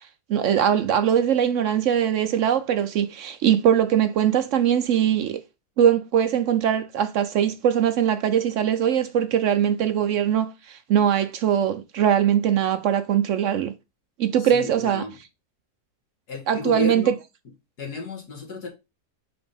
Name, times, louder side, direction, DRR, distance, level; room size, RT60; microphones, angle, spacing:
voice 1, 0.3-5.4 5.8-13.7 14.2-15.0 16.5-17.1, right 9 dB, 70° right, 0.7 m, -21 dB
voice 2, 14.4-15.2 16.3-17.1 17.8-18.7, left 3 dB, 75° left, 2.3 m, -32 dB
5.2 x 3.5 x 5.3 m
omnidirectional pair, 1.7 m